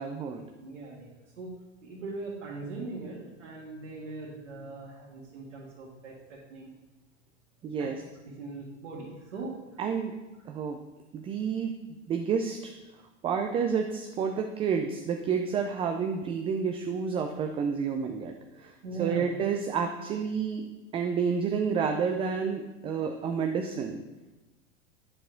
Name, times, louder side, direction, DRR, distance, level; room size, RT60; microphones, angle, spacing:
voice 1, 0.0-0.4 7.6-8.0 9.8-10.1 10.5-10.8 11.1-11.8 12.1-12.7 13.2-20.7 20.9-24.0, right 6 dB, 15° right, 5 dB, 0.3 m, -30 dB
voice 2, 0.6-1.5 1.8-6.7 7.8-7.9 8.2-9.6 18.8-19.2, right 3 dB, 70° right, -5 dB, 1.7 m, -40 dB
9.6 x 4.7 x 3.8 m, 1.1 s
hypercardioid pair, 95°, 36 cm